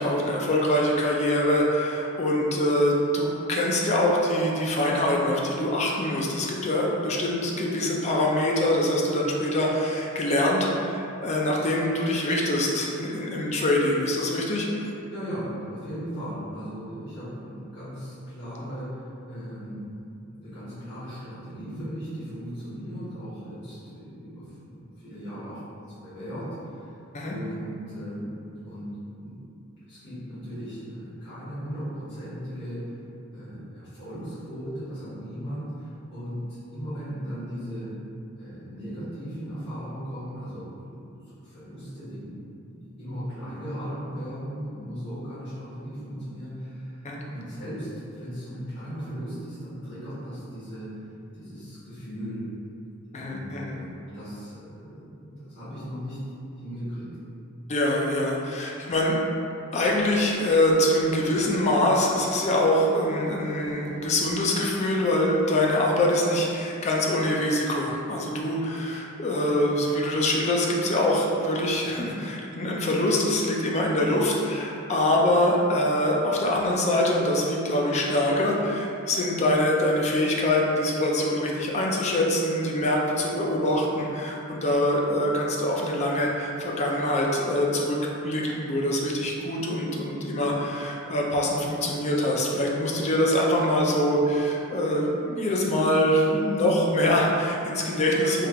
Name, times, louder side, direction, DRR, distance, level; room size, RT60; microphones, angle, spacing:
voice 1, 0.0-14.7 27.1-27.4 47.0-47.2 53.1-53.7 57.7-59.2 59.7-88.0 88.2-98.5, left 1 dB, 30° left, -2 dB, 0.4 m, -24 dB
voice 2, 15.1-20.0 20.2-25.6 26.0-26.8 27.3-28.3 28.7-29.4 29.9-32.9 33.3-38.0 38.4-42.3 42.6-47.0 47.3-50.9 51.3-52.5 53.2-56.2 56.5-57.1, equal, 55° left, -16 dB, 1.4 m, -37 dB
3.2 x 3.2 x 2.4 m, 2.7 s
head